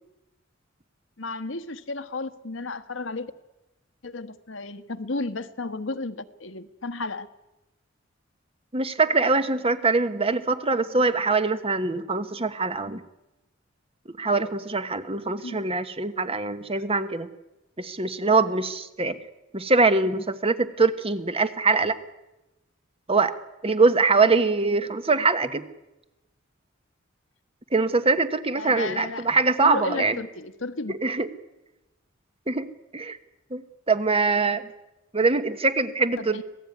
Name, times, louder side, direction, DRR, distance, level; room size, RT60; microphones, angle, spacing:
voice 1, 1.2-3.3 4.0-7.3 15.4-15.7 28.5-29.3 29.6-31.0 36.2-36.4, left 3 dB, 75° left, 11 dB, 1.4 m, -33 dB
voice 2, 8.7-13.0 14.2-17.3 17.8-19.2 19.5-22.0 23.1-23.4 23.6-25.6 27.7-30.2 31.0-31.3 32.5-32.7 32.9-33.2 33.5-34.7 35.1-36.4, right 3 dB, 30° right, 11 dB, 1.4 m, -23 dB
26.0 x 18.0 x 9.5 m, 0.97 s
head